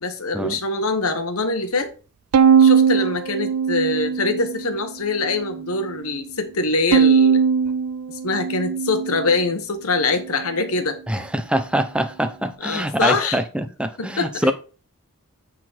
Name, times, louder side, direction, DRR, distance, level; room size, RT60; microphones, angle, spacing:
voice 1, 0.0-1.9 2.6-7.4 8.2-11.0 12.6-13.4 14.0-14.5, left 3 dB, 75° left, 1.2 m, -24 dB
Bowed string instrument, 2.3-4.7 5.2-5.9 6.9-9.4, right 7 dB, 85° right, 0.4 m, -19 dB
voice 2, 11.1-14.5, right 1 dB, 5° right, 0.6 m, -24 dB
8.4 x 3.9 x 4.4 m
head